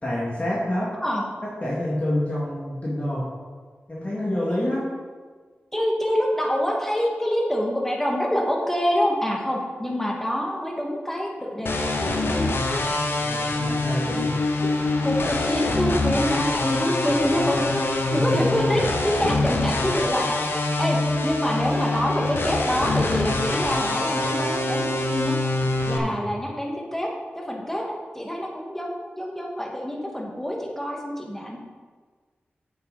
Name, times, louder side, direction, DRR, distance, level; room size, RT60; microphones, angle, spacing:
voice 1, 0.0-0.9 1.4-3.3 3.9-4.9 13.2-14.3 18.1-18.6 26.0-26.2, left 1 dB, 35° left, -7 dB, 2.4 m, -27 dB
voice 2, 5.7-12.6 14.6-14.7 15.0-17.7 17.9-25.4 25.9-31.6, equal, 10° left, -1 dB, 2.1 m, -26 dB
sound 1, 11.7-26.0, left 2 dB, 65° left, 1.0 m, -25 dB
8.7 x 7.2 x 4.3 m, 1.5 s
cardioid pair, 50°, 4 cm